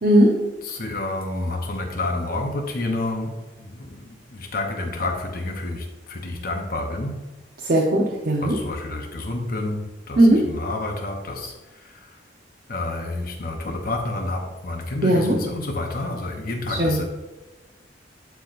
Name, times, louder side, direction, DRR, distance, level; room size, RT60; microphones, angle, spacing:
voice 1, 0.6-7.2 8.4-12.2 12.7-17.0, left 2 dB, 50° left, 3 dB, 0.9 m, -29 dB
voice 2, 7.6-8.6 10.2-10.4 15.0-15.4 16.7-17.0, right 1 dB, 50° right, -1 dB, 1.0 m, -17 dB
11.5 x 4.7 x 2.6 m, 1.1 s
head